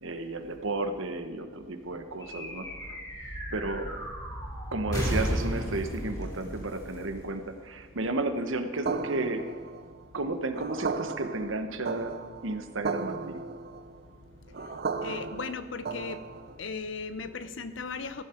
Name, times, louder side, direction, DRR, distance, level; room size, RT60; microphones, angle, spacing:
voice 1, 0.0-3.0 3.5-3.9 4.7-9.5 10.1-12.2 12.4-13.4, right 2 dB, 85° right, 8 dB, 1.2 m, -33 dB
sound 1, 2.2-7.9, equal, 20° left, 4.5 m, -34 dB
sound 2, 8.9-16.7, right 4 dB, 50° right, 0.6 m, -36 dB
voice 2, 15.0-16.2 16.6-18.2, left 4 dB, 70° left, 12 dB, 0.8 m, -36 dB
15.0 x 11.5 x 4.5 m, 1.5 s
head